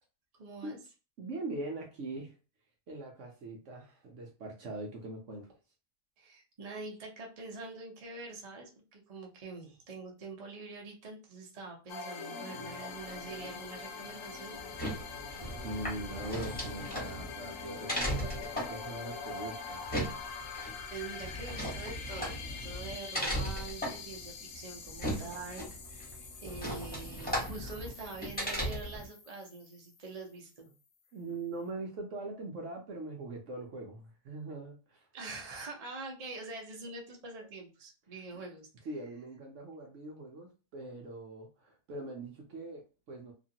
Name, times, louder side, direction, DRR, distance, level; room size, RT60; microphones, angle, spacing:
voice 1, 0.3-0.8 6.2-14.6 20.9-30.7 35.1-38.7, right 3 dB, 40° right, 0 dB, 0.5 m, -45 dB
voice 2, 1.2-2.4 2.9-5.6 15.6-19.9 27.6-27.7 31.1-35.1 38.8-43.3, right 2 dB, 60° right, 0 dB, 0.8 m, -42 dB
sound 1, 11.9-30.4, left 5 dB, 65° left, 0.9 m, -44 dB
sound 2, 14.6-29.1, equal, 5° left, 1.0 m, -37 dB
2.9 x 2.5 x 2.7 m, 0.34 s
omnidirectional pair, 1.7 m